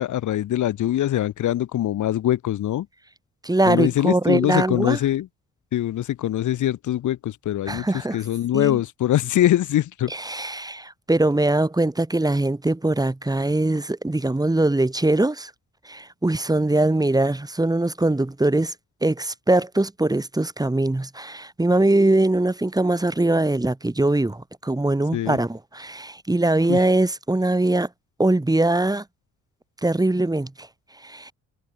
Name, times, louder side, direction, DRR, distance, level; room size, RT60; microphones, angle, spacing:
voice 1, 0.0-2.9 3.7-5.3 5.7-7.9 8.1-10.1 25.1-25.4 26.7-26.8, left 12 dB, 75° left, 6.3 m, -23 dB
voice 2, 3.4-5.0 7.7-8.2 8.5-8.8 10.1-15.5 15.9-18.7 19.0-27.9 28.2-29.0 29.8-30.7 31.0-31.3, right 2 dB, 10° right, 5.5 m, -22 dB
cardioid pair, 90°, 30 cm